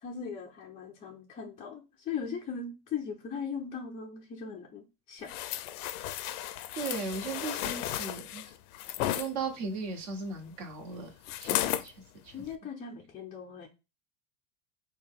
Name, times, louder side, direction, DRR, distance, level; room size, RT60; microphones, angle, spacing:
voice 1, 0.0-5.3 12.3-13.7, left 6 dB, 15° left, -3 dB, 0.4 m, -39 dB
sound 1, 5.3-9.3 11.3-11.9 12.4-12.5, left 13 dB, 75° left, 0.6 m, -34 dB
voice 2, 6.8-8.5 9.1-11.1 11.4-11.9 12.2-12.3, right 4 dB, 55° right, 3 dB, 1.5 m, -37 dB
4.5 x 2.3 x 3.5 m, 0.27 s
supercardioid pair, 150°, 45 cm